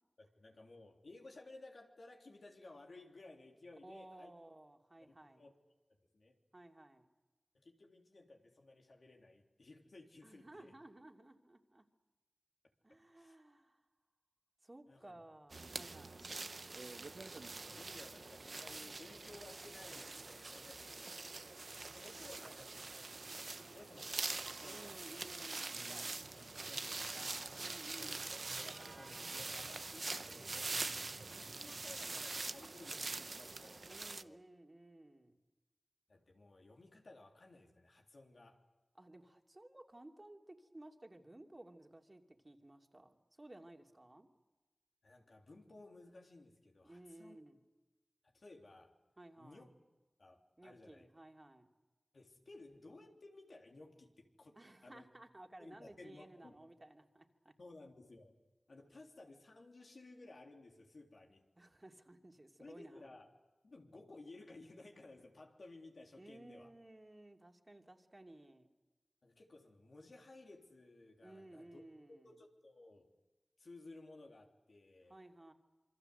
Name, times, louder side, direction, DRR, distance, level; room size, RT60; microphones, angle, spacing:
voice 1, 0.2-4.3 5.0-5.5 5.9-6.4 7.5-10.7 13.1-13.3 14.9-15.2 17.5-21.2 21.9-25.0 25.9-27.6 28.0-28.2 28.5-31.0 31.3-34.4 36.1-38.6 45.0-47.4 48.3-48.9 49.4-49.7 50.2-51.1 52.1-54.6 54.8-55.1 55.6-56.6 57.6-58.4 58.7-61.4 62.6-63.3 63.6-66.7 69.2-71.8 72.1-73.1 73.6-75.2, left 2 dB, 90° left, 1 dB, 3.4 m, -57 dB
voice 2, 3.8-5.4 6.5-7.1 10.2-11.9 12.8-13.8 14.6-16.3 24.6-25.9 27.6-28.3 33.8-35.4 38.9-44.3 46.8-47.6 49.2-49.7 50.6-51.7 54.6-57.5 61.6-63.1 66.2-68.7 71.2-72.3 75.1-75.5, right 1 dB, 40° right, 3 dB, 2.8 m, -57 dB
sound 1, 15.5-34.2, right 3 dB, 80° right, 0.8 m, -44 dB
27.0 x 24.0 x 8.0 m, 1.2 s
wide cardioid pair, 40°, 0 cm